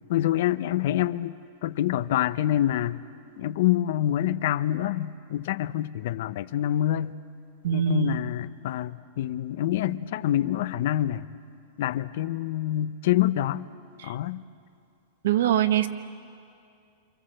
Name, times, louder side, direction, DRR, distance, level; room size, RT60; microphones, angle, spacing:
voice 1, 0.1-3.0 3.4-7.2 7.7-11.3 11.8-13.7 14.0-14.4, left 12 dB, 65° left, 0.8 m, -26 dB
voice 2, 7.6-8.4 14.0-14.1 15.2-15.9, right 11 dB, 75° right, 1.3 m, -24 dB
28.5 x 26.0 x 7.8 m
supercardioid pair, 145°, 0 cm